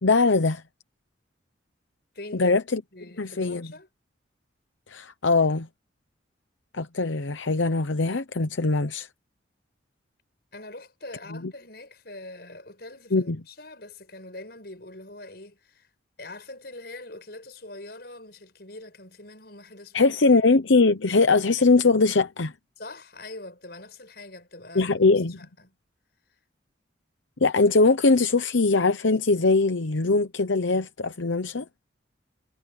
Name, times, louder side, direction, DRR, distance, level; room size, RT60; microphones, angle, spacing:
voice 1, 0.0-0.6 2.3-2.8 3.2-3.7 4.9-5.7 6.7-9.1 11.3-11.5 13.1-13.4 19.9-22.5 24.7-25.4 27.4-31.7, left 3 dB, 85° left, 0.9 m, -21 dB
voice 2, 2.1-2.5 2.9-3.9 10.5-15.9 16.2-20.2 22.8-24.9 25.4-25.7, left 2 dB, 55° left, 7.4 m, -43 dB
head